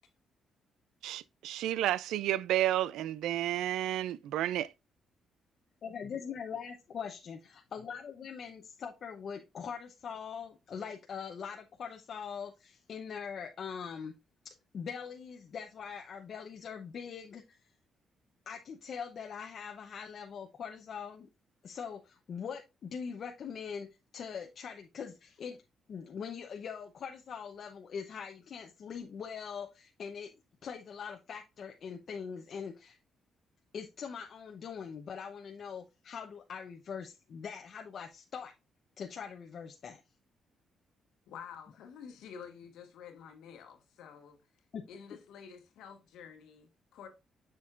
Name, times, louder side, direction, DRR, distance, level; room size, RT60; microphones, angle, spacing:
voice 1, 1.0-4.7, right 13 dB, 90° right, 0.3 m, -31 dB
voice 2, 5.8-14.1 14.4-17.6 18.5-21.3 21.6-23.9 24.1-25.6 25.9-30.3 30.6-33.0 33.7-38.5 39.0-40.0 44.7-44.9, left 6 dB, 60° left, 0.8 m, -42 dB
voice 3, 41.3-44.4 44.9-47.1, left 7 dB, 90° left, 1.6 m, -49 dB
7.3 x 6.2 x 2.4 m
cardioid pair, 85°, 0 cm